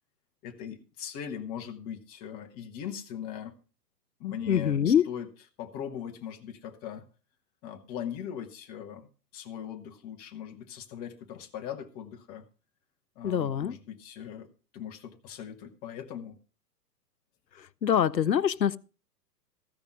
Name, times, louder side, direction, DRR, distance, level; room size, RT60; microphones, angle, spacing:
voice 1, 0.4-3.6 4.2-5.3 5.6-7.1 7.6-12.5 13.2-16.4, left 9 dB, 20° left, 0.9 m, -40 dB
voice 2, 4.5-5.1 13.2-13.8 17.5-18.8, left 9 dB, 90° left, 0.6 m, -25 dB
14.5 x 5.3 x 6.0 m
figure-of-eight pair, 115°, 49 cm